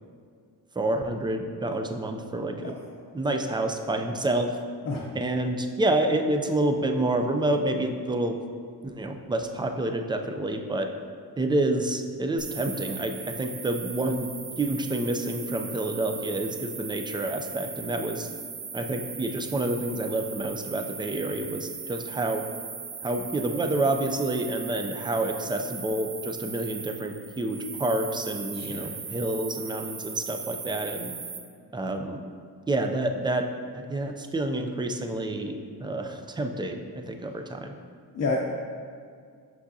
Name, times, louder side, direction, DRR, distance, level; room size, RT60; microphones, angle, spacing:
voice 1, 0.8-2.7 3.1-4.5 5.1-8.4 8.8-10.9 11.4-13.1 13.4-14.3 14.6-18.3 18.7-22.4 23.0-31.1 31.7-32.2 32.7-33.4 33.7-35.5 35.8-37.7, right 1 dB, 10° right, 5 dB, 0.3 m, -28 dB
sound 1, 12.4-31.4, right 5 dB, 75° right, 1.0 m, -39 dB
voice 2, 28.5-28.9 38.1-38.4, left 3 dB, 40° left, -3 dB, 0.6 m, -29 dB
6.1 x 5.9 x 2.7 m, 2.2 s
cardioid pair, 95°, 40 cm